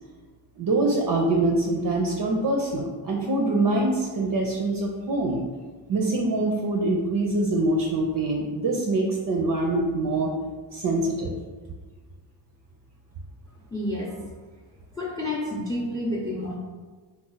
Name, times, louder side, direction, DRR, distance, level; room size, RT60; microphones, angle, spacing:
voice 1, 0.6-5.4 5.9-10.3 10.7-11.3, right 2 dB, 45° right, 0 dB, 0.5 m, -24 dB
voice 2, 13.7-14.3 14.9-16.5, left 1 dB, 5° left, -3 dB, 0.6 m, -29 dB
3.0 x 2.3 x 3.8 m, 1.4 s
cardioid pair, 60°, 50 cm